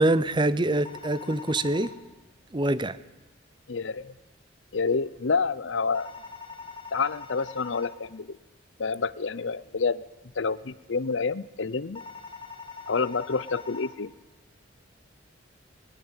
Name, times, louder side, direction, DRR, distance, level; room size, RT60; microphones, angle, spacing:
voice 1, 0.0-1.9 2.5-3.0, right 2 dB, 25° right, 0.7 m, -24 dB
sound 1, 0.8-1.9 5.9-7.9 11.9-13.9, left 5 dB, 25° left, 2.0 m, -42 dB
voice 2, 3.7-4.1 4.7-6.1 6.9-8.3 8.8-10.0 10.4-12.0 12.9-14.1, left 4 dB, 75° left, 0.7 m, -28 dB
20.0 x 20.0 x 9.0 m
head